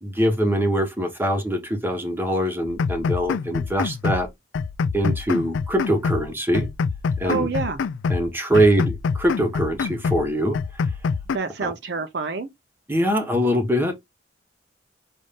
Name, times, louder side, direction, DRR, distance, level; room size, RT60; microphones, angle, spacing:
voice 1, 0.0-4.3 4.9-6.7 7.2-7.5 8.1-10.6 11.6-11.7 12.9-13.9, equal, 10° right, 0.9 m, -23 dB
sound 1, 2.7-4.3 4.5-6.3 6.5-8.3 8.5-10.3 10.5-11.4, left 5 dB, 80° left, 0.4 m, -26 dB
voice 2, 7.2-7.8 8.5-8.6 11.3-12.5, right 4 dB, 60° right, 0.6 m, -27 dB
5.4 x 2.6 x 3.4 m
head